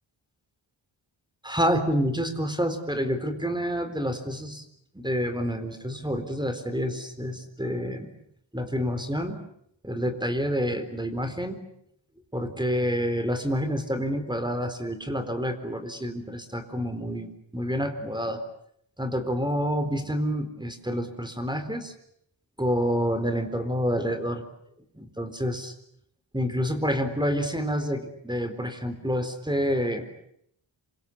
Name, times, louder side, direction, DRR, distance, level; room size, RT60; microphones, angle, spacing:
voice 1, 1.4-4.6 4.9-8.1 8.5-9.4 9.8-11.6 12.3-18.4 19.0-21.9 22.6-24.4 25.0-25.7 26.3-30.1, equal, 10° right, 8 dB, 4.0 m, -28 dB
27.5 x 25.0 x 8.6 m, 0.71 s
wide cardioid pair, 95°, 47 cm